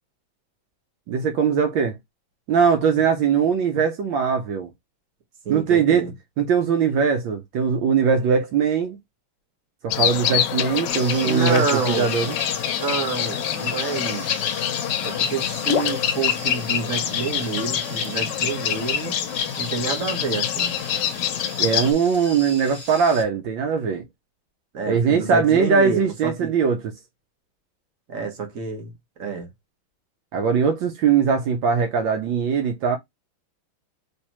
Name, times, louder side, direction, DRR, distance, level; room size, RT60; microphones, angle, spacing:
voice 1, 1.1-1.9 2.5-4.7 5.5-6.1 6.4-9.0 9.8-12.3 21.6-24.0 24.9-26.8 30.3-33.0, right 6 dB, 75° right, 1.3 m, -21 dB
voice 2, 5.4-6.1 11.2-12.1 12.8-14.3 15.0-19.2 19.6-20.7 24.7-26.5 28.1-29.5, right 5 dB, 50° right, 1.3 m, -28 dB
sound 1, 9.9-21.9, left 9 dB, 70° left, 1.1 m, -25 dB
sound 2, 10.9-23.2, equal, 5° right, 1.3 m, -39 dB
3.3 x 3.2 x 2.9 m
omnidirectional pair, 2.2 m